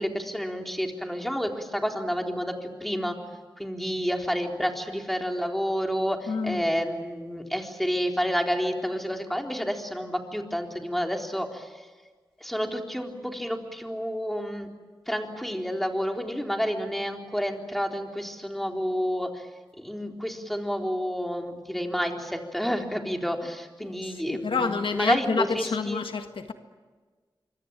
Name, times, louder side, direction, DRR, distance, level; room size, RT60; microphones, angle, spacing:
voice 1, 0.0-3.2 3.6-11.9 12.4-14.7 15.1-19.5 19.8-26.0, equal, ahead, 3 dB, 3.8 m, -30 dB
voice 2, 6.3-6.6 24.2-26.5, left 4 dB, 80° left, 7 dB, 1.6 m, -28 dB
25.5 x 23.5 x 9.1 m, 1.4 s
cardioid pair, 60°, 9 cm